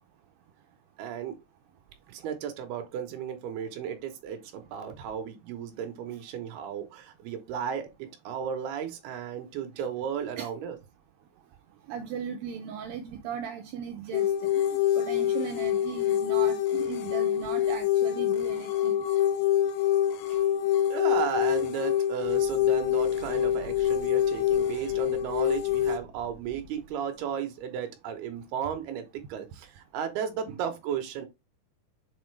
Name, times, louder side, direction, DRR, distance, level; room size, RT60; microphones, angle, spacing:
voice 1, 1.0-1.4 2.1-10.8 20.3-20.4 20.9-31.3, right 8 dB, 75° right, 2.9 m, -34 dB
voice 2, 11.9-14.5 15.0-18.9 30.5-30.6, right 7 dB, 90° right, 2.0 m, -37 dB
sound 1, 14.1-26.0, left 11 dB, 85° left, 2.9 m, -26 dB
sound 2, 22.2-27.2, right 2 dB, 15° right, 1.2 m, -49 dB
7.3 x 4.3 x 3.2 m
omnidirectional pair, 4.9 m